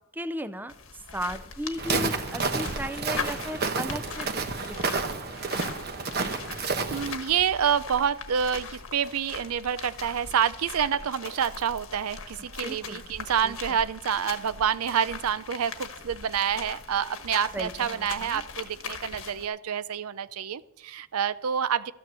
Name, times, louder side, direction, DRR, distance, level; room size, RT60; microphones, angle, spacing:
voice 1, 0.1-5.1 12.6-13.0 13.4-13.5 17.5-18.4, equal, 10° right, 12 dB, 0.5 m, -36 dB
sound 1, 0.7-19.5, left 5 dB, 65° left, 1.3 m, -41 dB
Walk footsteps, 1.8-7.1, right 4 dB, 45° right, 1.1 m, -30 dB
voice 2, 6.9-21.9, right 8 dB, 80° right, 16 dB, 0.5 m, -28 dB
13.5 x 9.4 x 6.8 m, 0.86 s
head